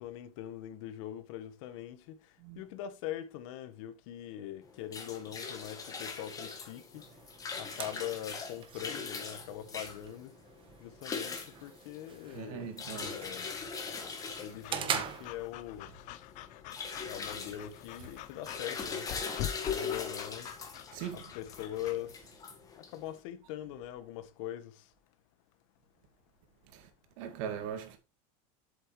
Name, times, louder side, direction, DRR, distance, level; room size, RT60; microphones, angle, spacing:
voice 1, 0.0-2.0 2.6-7.0 7.5-10.3 10.8-13.6 14.4-15.9 17.1-19.1 19.6-20.5 21.1-22.1 22.8-24.8, left 12 dB, 70° left, 1.3 m, -42 dB
sound 1, 4.6-23.1, left 5 dB, 20° left, 1.7 m, -41 dB
sound 2, 6.9-15.9, right 8 dB, 30° right, 1.2 m, -43 dB
voice 2, 12.3-13.2 20.9-21.4 26.7-26.9 27.2-28.0, right 8 dB, 70° right, 2.3 m, -40 dB
Breathing / Dog, 12.8-22.0, left 13 dB, 45° left, 0.7 m, -46 dB
7.9 x 7.8 x 3.2 m
supercardioid pair, 150°, 17 cm